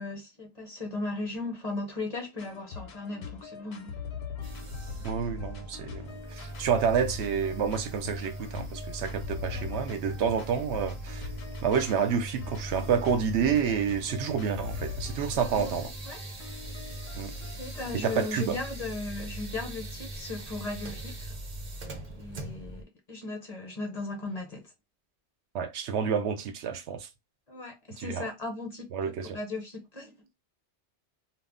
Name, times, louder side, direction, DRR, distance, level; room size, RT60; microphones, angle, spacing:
voice 1, 0.0-4.0 9.5-9.7 15.5-15.8 16.0-16.2 17.5-21.2 22.1-24.7 27.5-30.3, left 3 dB, 40° left, 0.7 m, -37 dB
sound 1, 2.4-18.4, left 7 dB, 70° left, 0.8 m, -43 dB
sound 2, 4.4-22.8, right 1 dB, 40° right, 0.6 m, -40 dB
voice 2, 5.0-11.3 11.6-15.9 17.2-17.3 18.0-18.6 25.5-27.1 28.0-28.3 28.9-29.4, right 7 dB, 75° right, 0.8 m, -29 dB
2.2 x 2.0 x 3.6 m
omnidirectional pair, 1.2 m